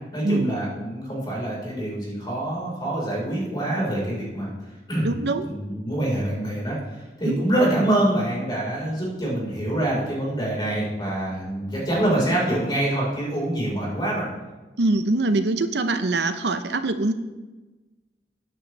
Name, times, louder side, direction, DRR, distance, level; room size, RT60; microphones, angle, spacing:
voice 1, 0.1-4.5 4.9-5.1 5.4-14.3, right 1 dB, 25° left, -4 dB, 4.4 m, -25 dB
voice 2, 5.0-5.4 7.2-7.4 14.8-17.1, right 2 dB, 70° right, 10 dB, 0.7 m, -23 dB
14.0 x 9.8 x 3.3 m, 1.2 s
head